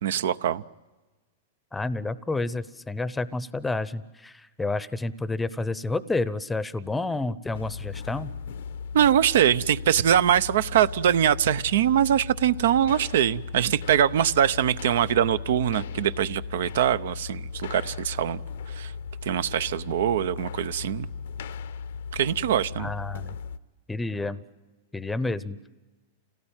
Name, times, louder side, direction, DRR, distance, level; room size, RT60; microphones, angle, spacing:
voice 1, 0.0-0.6 8.9-18.4 18.7-18.9 19.2-21.1 22.1-22.9, right 10 dB, 75° right, 15 dB, 0.7 m, -23 dB
voice 2, 1.7-8.3 22.8-23.4 23.9-24.4 24.9-25.6, left 2 dB, 10° left, 16 dB, 0.7 m, -30 dB
sound 1, 7.5-23.6, left 6 dB, 80° left, 0.9 m, -37 dB
27.0 x 17.5 x 8.9 m, 1.2 s
hypercardioid pair, 135°, 0 cm